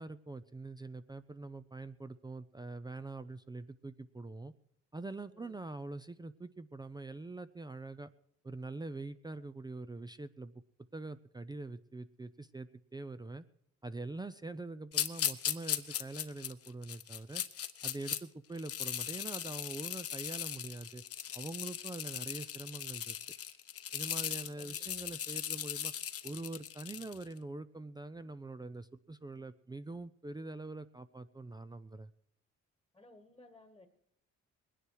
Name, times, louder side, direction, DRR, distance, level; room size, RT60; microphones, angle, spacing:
voice 1, 0.0-4.5 4.9-8.1 8.4-10.5 10.9-13.4 13.8-17.4 17.8-21.0 21.3-23.2 23.9-25.9 26.2-32.1, right 2 dB, 15° right, 13 dB, 0.5 m, -44 dB
voice 2, 5.3-5.6 24.6-25.1 32.9-33.9, left 2 dB, 10° left, 8 dB, 1.4 m, -59 dB
sound 1, 14.9-18.2 18.6-27.2, left 9 dB, 50° left, 0.9 m, -38 dB
20.5 x 10.0 x 4.7 m, 0.69 s
cardioid pair, 90°, 30 cm